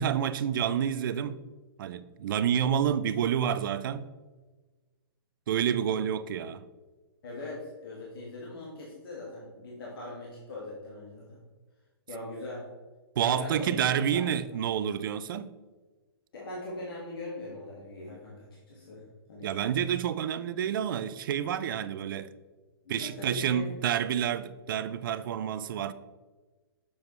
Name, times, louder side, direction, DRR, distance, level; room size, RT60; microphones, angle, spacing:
voice 1, 0.0-1.4 1.8-4.1 5.5-6.6 13.2-15.5 19.4-22.3 22.9-25.9, right 9 dB, 55° right, 0.4 m, -29 dB
voice 2, 7.2-11.4 12.1-12.7 13.2-13.7 14.1-14.6 16.3-19.0 19.3-19.6 22.8-23.7, left 2 dB, 65° left, 1.5 m, -41 dB
7.0 x 4.7 x 3.1 m
hypercardioid pair, 125°, 13 cm